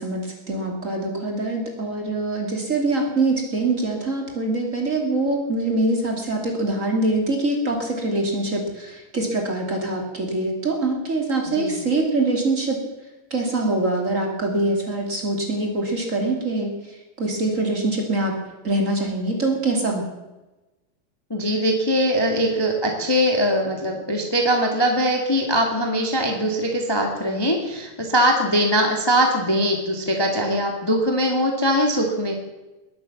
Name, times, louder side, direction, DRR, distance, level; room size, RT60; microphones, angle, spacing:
voice 1, 0.0-12.8 13.3-16.7 17.2-18.3 18.6-20.0, right 2 dB, 25° right, 1 dB, 2.4 m, -24 dB
voice 2, 11.5-11.8 21.3-32.3, equal, 15° left, 1 dB, 0.7 m, -21 dB
20.5 x 8.8 x 7.1 m, 1.1 s
omnidirectional pair, 4.3 m